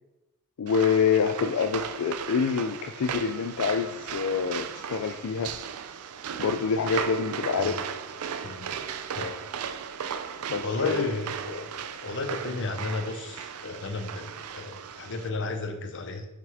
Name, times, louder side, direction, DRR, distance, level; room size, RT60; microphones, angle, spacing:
voice 1, 0.6-5.5 6.4-7.8 10.5-11.1, left 6 dB, 80° left, 6 dB, 0.4 m, -26 dB
sound 1, 0.7-15.3, right 7 dB, 80° right, 0.4 m, -36 dB
voice 2, 10.6-11.7 12.0-16.3, left 3 dB, 55° left, 6 dB, 0.8 m, -33 dB
6.1 x 5.8 x 3.5 m, 0.99 s
head